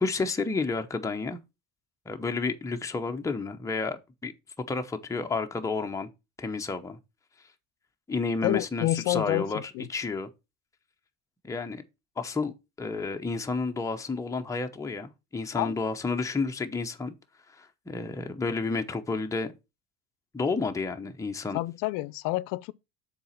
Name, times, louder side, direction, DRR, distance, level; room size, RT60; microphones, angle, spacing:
voice 1, 0.0-1.4 2.1-4.3 4.7-6.1 6.4-7.0 8.1-10.3 11.4-11.8 12.2-17.1 17.5-19.5 20.3-21.6, left 3 dB, 10° left, 0.8 m, -31 dB
voice 2, 8.4-9.9 15.5-15.7 21.5-22.7, left 18 dB, 70° left, 0.6 m, -28 dB
6.9 x 4.2 x 5.7 m
cardioid pair, 120°, 34 cm